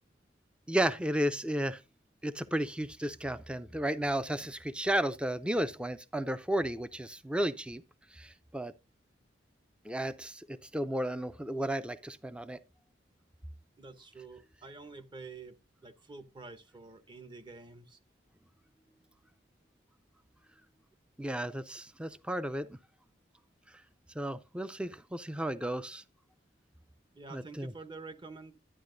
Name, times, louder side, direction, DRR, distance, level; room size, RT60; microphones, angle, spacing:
voice 1, 0.7-1.8 2.2-7.8 8.1-8.7 9.8-12.6 21.2-22.8 24.2-26.0 27.3-27.7, right 1 dB, 5° right, 0.4 m, -33 dB
voice 2, 13.8-15.6 15.8-18.0 27.1-28.5, right 3 dB, 25° right, 0.8 m, -48 dB
11.0 x 9.5 x 2.6 m
head